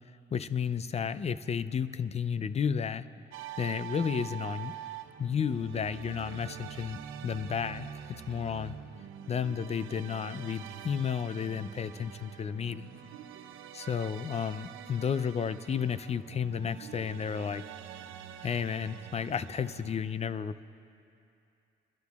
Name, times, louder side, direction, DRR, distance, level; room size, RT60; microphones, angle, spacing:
voice 1, 0.3-3.1 3.6-4.7 5.2-8.7 9.3-12.9 13.7-17.6 18.4-20.7, left 7 dB, 35° left, 14 dB, 0.4 m, -32 dB
sound 1, 3.3-20.0, right 10 dB, 85° right, 0.6 m, -45 dB
28.5 x 13.5 x 2.4 m, 2.6 s
cardioid pair, 90°, 20 cm